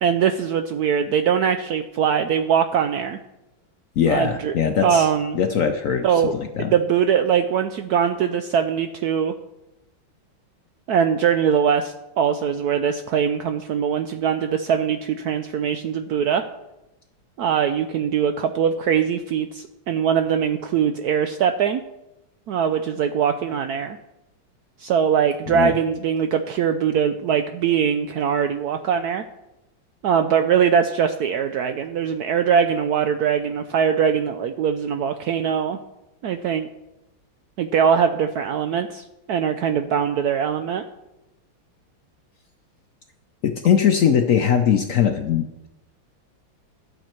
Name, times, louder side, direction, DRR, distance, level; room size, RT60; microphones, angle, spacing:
voice 1, 0.0-3.2 4.1-4.5 4.8-5.4 6.0-6.3 6.6-9.3 10.9-16.4 17.4-21.8 22.5-24.0 24.8-29.2 30.0-35.8 36.2-36.7 37.6-40.8, right 7 dB, 85° right, 8 dB, 0.8 m, -22 dB
voice 2, 4.0-5.1 5.3-6.1 6.6-6.7 25.5-25.7 43.4-45.7, left 8 dB, 80° left, 5 dB, 0.7 m, -20 dB
12.0 x 8.9 x 4.4 m, 0.94 s
omnidirectional pair, 2.3 m